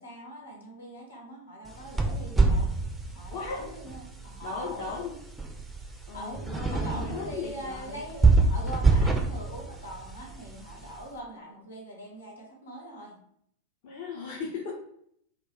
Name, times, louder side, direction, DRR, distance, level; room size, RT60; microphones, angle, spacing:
voice 1, 0.0-2.7 3.1-5.1 6.1-6.4 6.7-13.2, equal, 75° left, -2 dB, 0.9 m, -42 dB
sound 1, 1.7-11.0, right 3 dB, 10° right, 0.4 m, -27 dB
voice 2, 3.3-3.7 4.4-5.2 6.1-8.0 13.8-14.7, left 4 dB, 50° left, -3 dB, 0.6 m, -37 dB
2.2 x 2.2 x 3.7 m, 0.68 s
figure-of-eight pair, 90°, 0 cm